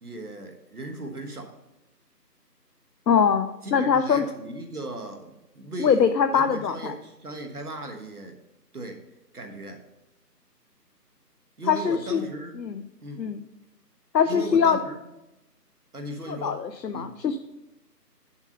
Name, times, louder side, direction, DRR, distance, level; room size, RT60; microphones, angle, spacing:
voice 1, 0.0-1.5 3.6-6.0 6.3-8.4 8.7-9.0 9.3-9.8 11.6-12.5 13.0-13.2 14.2-15.0 15.9-16.6 16.9-17.1, right 1 dB, 65° right, 4 dB, 1.4 m, -37 dB
voice 2, 3.1-4.2 5.8-6.9 11.7-12.2 12.6-12.8 13.2-13.4 14.1-14.8 16.3-17.4, left 6 dB, 90° left, 9 dB, 0.7 m, -22 dB
7.1 x 5.6 x 5.2 m, 0.95 s
figure-of-eight pair, 175°, 49 cm